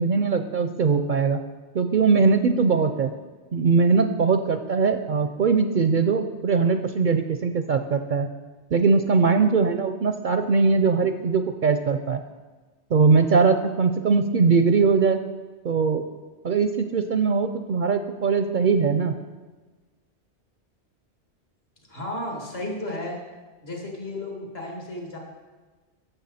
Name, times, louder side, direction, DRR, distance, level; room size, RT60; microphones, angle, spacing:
voice 1, 0.0-1.4 1.7-3.1 3.5-8.3 8.7-12.2 12.9-15.2 15.6-16.0 16.4-19.1, right 5 dB, 55° right, 8 dB, 0.6 m, -21 dB
voice 2, 21.9-23.2 23.6-25.2, left 1 dB, 65° left, -1 dB, 2.4 m, -33 dB
14.5 x 7.1 x 4.2 m, 1.3 s
omnidirectional pair, 1.1 m